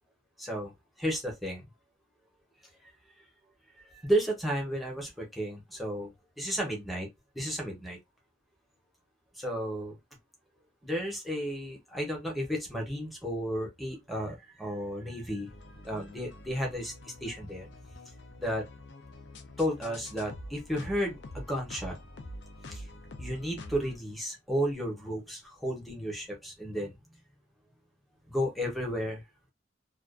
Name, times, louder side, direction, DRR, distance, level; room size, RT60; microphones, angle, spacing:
voice 1, 0.4-0.7 1.0-1.6 3.8-6.1 6.4-7.1 7.3-8.0 9.4-9.9 10.8-15.5 15.8-17.7 18.4-18.7 19.6-22.0 22.7-22.9 23.2-27.0 28.3-29.2, equal, ahead, 0.8 m, -33 dB
sound 1, 15.5-24.0, left 1 dB, 65° left, 0.5 m, -46 dB
2.4 x 2.2 x 2.4 m
head